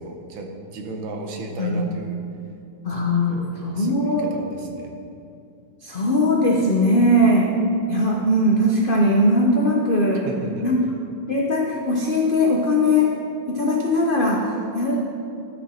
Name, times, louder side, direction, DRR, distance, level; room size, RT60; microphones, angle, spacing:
voice 1, 0.0-2.2 3.3-4.9 7.8-7.9 10.3-10.7, right 2 dB, 80° right, 2 dB, 1.8 m, -34 dB
voice 2, 2.8-3.4 3.6-4.3 5.8-7.6 7.9-10.3 10.6-10.8 11.3-13.2 13.5-15.0, left 1 dB, 65° left, -1 dB, 0.5 m, -20 dB
13.0 x 6.1 x 4.3 m, 2.6 s
omnidirectional pair, 2.1 m